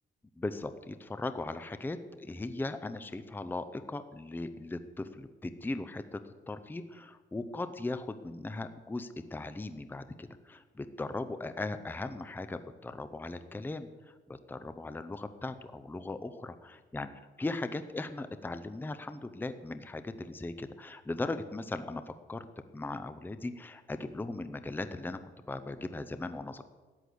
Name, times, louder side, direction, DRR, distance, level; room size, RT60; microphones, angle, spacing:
voice 1, 0.4-17.1 17.4-22.4 22.7-25.2 25.5-26.6, left 2 dB, 10° left, 11 dB, 0.6 m, -38 dB
13.5 x 9.9 x 7.9 m, 1.4 s
cardioid pair, 135°, 20 cm